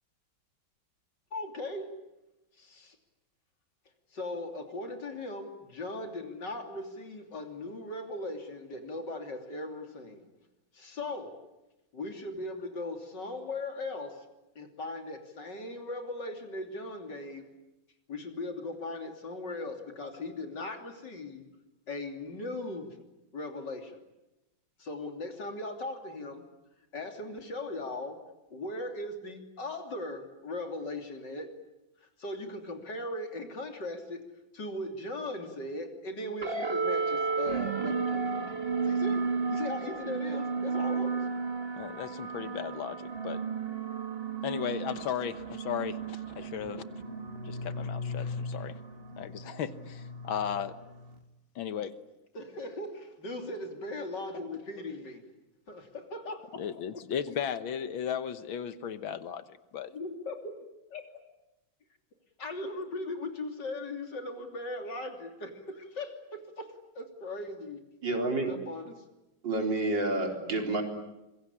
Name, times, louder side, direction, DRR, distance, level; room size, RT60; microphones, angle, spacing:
voice 1, 1.3-2.0 2.6-3.0 4.1-10.3 10.7-11.4 11.9-14.2 14.6-17.5 18.1-21.4 21.9-23.0 23.3-24.0 24.8-26.4 26.9-28.2 28.5-31.5 32.2-34.2 34.5-38.5 38.9-39.2 39.5-41.2 52.3-55.2 55.7-56.6 56.9-57.0 57.3-57.4 59.9-60.5 60.9-61.1 62.4-66.7 67.0-67.8 68.5-69.0, left 2 dB, 60° left, 5 dB, 3.6 m, -38 dB
sound 1, 36.4-51.2, right 4 dB, 30° right, 2.2 m, -34 dB
voice 2, 41.8-43.4 44.4-46.8 47.4-48.8 49.2-50.7 51.6-52.0 56.6-59.4 59.7-59.9, left 8 dB, 85° left, 12 dB, 2.0 m, -35 dB
voice 3, 68.0-68.5 69.4-70.8, right 2 dB, 65° right, 3 dB, 4.5 m, -29 dB
26.0 x 22.5 x 9.9 m, 0.98 s
omnidirectional pair, 2.1 m